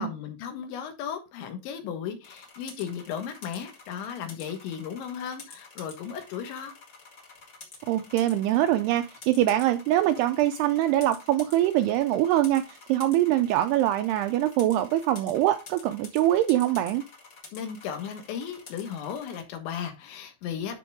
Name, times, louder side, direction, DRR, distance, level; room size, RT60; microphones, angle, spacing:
voice 1, 0.0-6.8 17.5-20.8, left 8 dB, 80° left, 3.6 m, -35 dB
sound 1, 2.2-19.4, left 4 dB, 45° left, 1.5 m, -49 dB
voice 2, 7.9-17.0, right 13 dB, 85° right, 2.3 m, -23 dB
12.0 x 4.6 x 3.5 m
omnidirectional pair, 5.2 m